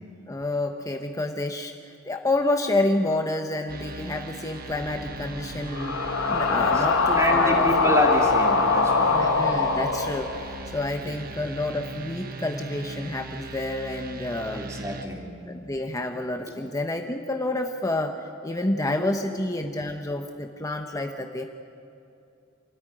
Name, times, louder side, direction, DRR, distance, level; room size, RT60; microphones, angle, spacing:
voice 1, 0.3-6.0 6.3-7.7 9.1-14.6 15.5-21.5, left 2 dB, 15° left, 4 dB, 1.0 m, -29 dB
sound 1, 3.7-15.1, right 3 dB, 45° right, 1.5 m, -39 dB
sound 2, 4.7-10.8, left 4 dB, 80° left, 1.7 m, -23 dB
voice 2, 6.5-6.8 7.1-9.2 11.0-11.2 14.5-15.3 19.0-19.7, equal, 15° right, 0 dB, 3.1 m, -28 dB
28.0 x 14.0 x 9.9 m, 2.6 s
head